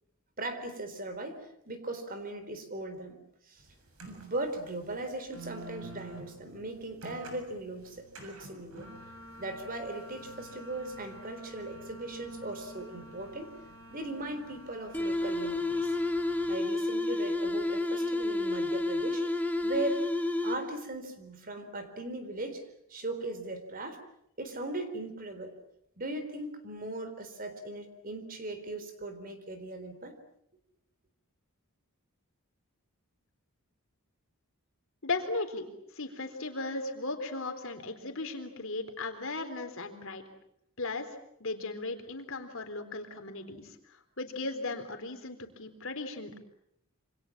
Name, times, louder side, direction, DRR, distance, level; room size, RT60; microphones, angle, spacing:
voice 1, 0.4-3.2 3.5-3.6 4.1-8.9 9.4-13.5 13.9-16.0 16.5-20.1 20.4-22.6 22.9-24.0 24.4-25.6 26.0-30.2, right 2 dB, 40° right, 9 dB, 4.0 m, -38 dB
sound 1, 3.6-16.6, right 1 dB, 75° right, 7.0 m, -49 dB
sound 2, 14.9-20.9, left 2 dB, 5° left, 2.2 m, -30 dB
voice 2, 35.0-35.7 36.0-40.2 40.8-41.1 41.4-43.8 44.2-46.4, left 3 dB, 60° left, 7 dB, 3.9 m, -36 dB
27.5 x 26.0 x 7.5 m, 0.76 s
head